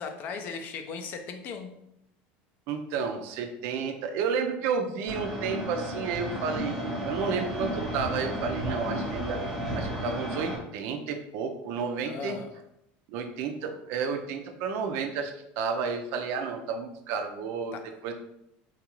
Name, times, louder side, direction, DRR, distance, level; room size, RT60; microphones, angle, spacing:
voice 1, 0.0-1.8 12.1-12.5 17.7-17.8, left 5 dB, 35° left, 6 dB, 0.4 m, -37 dB
voice 2, 2.7-9.4 9.8-12.4 13.1-18.1, right 5 dB, 50° right, 5 dB, 0.4 m, -31 dB
sound 1, 5.1-10.6, equal, ahead, 0.8 m, -33 dB
3.8 x 2.4 x 2.9 m, 0.80 s
cardioid pair, 170°, 5 cm